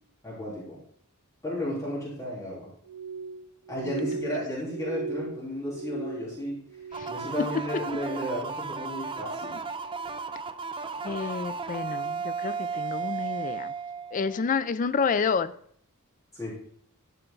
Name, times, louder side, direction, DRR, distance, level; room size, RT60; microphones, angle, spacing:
voice 1, 0.2-0.8 1.4-2.7 3.7-6.6 7.1-9.6 16.3-16.6, equal, 15° left, -8 dB, 3.6 m, -33 dB
Glass, 2.9-7.4 7.7-8.4 8.8-9.3 9.9-10.2, right 5 dB, 80° right, 0.6 m, -39 dB
sound 1, 6.9-14.5, right 5 dB, 25° right, 0.5 m, -34 dB
voice 2, 7.4-7.8 9.4-9.6 11.0-13.7 14.1-15.5, left 5 dB, 35° left, 13 dB, 0.4 m, -29 dB
12.5 x 5.7 x 3.9 m, 0.63 s
head